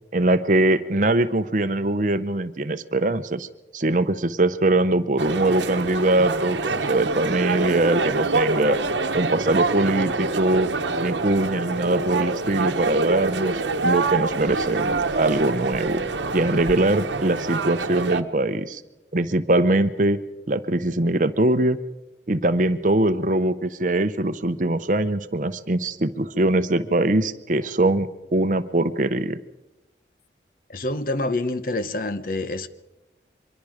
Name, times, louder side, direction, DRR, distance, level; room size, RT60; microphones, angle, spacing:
voice 1, 0.1-3.5 3.7-8.8 9.1-10.7 11.0-13.5 13.8-16.0 16.3-18.8 19.1-20.2 20.5-21.8 22.3-29.4, right 2 dB, 45° right, 0.8 m, -22 dB
sound 1, 5.2-18.2, right 3 dB, 80° right, 1.1 m, -26 dB
voice 2, 30.7-32.7, left 2 dB, 50° left, 0.9 m, -27 dB
24.5 x 22.5 x 5.0 m
head